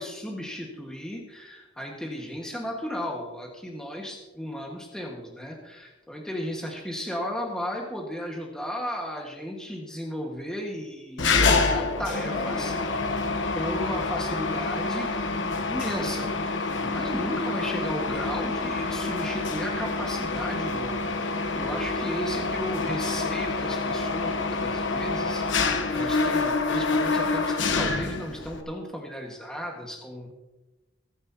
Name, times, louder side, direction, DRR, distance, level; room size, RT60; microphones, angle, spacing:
voice 1, 0.0-13.2 13.5-16.3 16.8-30.3, equal, 5° left, -1 dB, 1.7 m, -35 dB
Mechanisms, 11.2-28.6, left 3 dB, 70° left, 1.1 m, -27 dB
24.0 x 10.0 x 2.9 m, 1.1 s
head